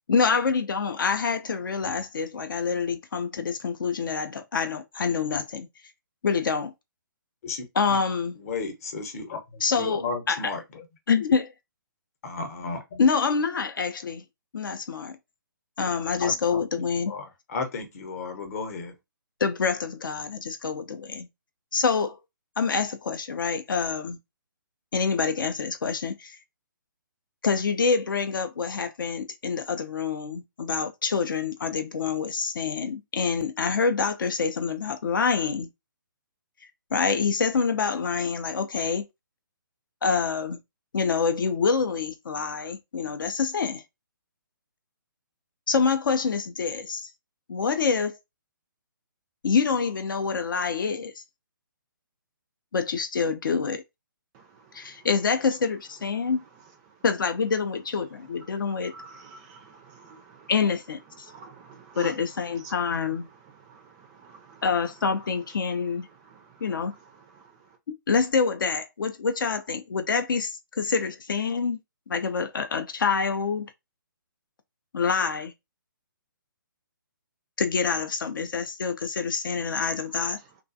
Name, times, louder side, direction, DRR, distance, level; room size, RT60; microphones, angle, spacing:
voice 1, 0.1-5.7 6.2-6.7 7.8-8.4 9.6-10.5 11.1-11.5 13.0-14.2 14.5-15.2 15.8-17.1 19.4-21.3 21.7-22.2 22.6-24.2 24.9-26.4 27.4-35.7 36.9-39.0 40.0-40.6 40.9-43.8 45.7-47.1 47.5-48.2 49.4-51.2 52.7-53.8 54.7-56.4 57.0-58.9 60.5-61.3 62.0-63.3 64.6-66.1 66.6-66.9 67.9-71.8 72.1-73.7 74.9-75.5 77.6-80.4, left 5 dB, 70° left, 0.4 m, -26 dB
voice 2, 8.4-10.8 12.2-13.0 16.2-18.9, left 4 dB, 45° left, 0.8 m, -34 dB
voice 3, 54.3-67.8 79.5-80.6, right 5 dB, 20° right, 0.4 m, -51 dB
2.4 x 2.2 x 2.5 m
figure-of-eight pair, 140°, 11 cm